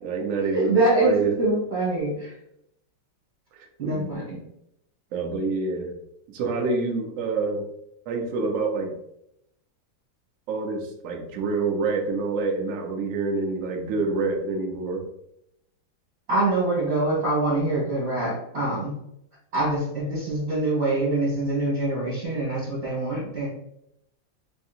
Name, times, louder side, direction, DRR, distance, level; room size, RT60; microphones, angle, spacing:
voice 1, 0.0-1.4 3.5-4.1 5.1-5.9 6.3-7.7 8.1-8.9 10.5-15.0, right 3 dB, 80° right, 2 dB, 0.7 m, -27 dB
voice 2, 0.5-2.3 3.8-4.4 16.3-18.9 19.5-23.5, right 2 dB, 55° right, -9 dB, 1.6 m, -24 dB
3.5 x 2.7 x 2.4 m, 0.78 s
omnidirectional pair, 2.1 m